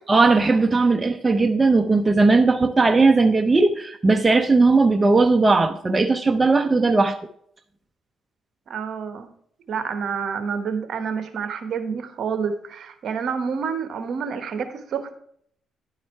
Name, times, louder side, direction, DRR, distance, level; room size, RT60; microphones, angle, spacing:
voice 1, 0.1-7.2, right 3 dB, 25° right, 7 dB, 0.6 m, -18 dB
voice 2, 8.7-9.3 9.7-15.1, right 6 dB, 60° right, 9 dB, 1.0 m, -28 dB
10.5 x 4.8 x 4.4 m, 0.66 s
cardioid pair, 90°, 0 cm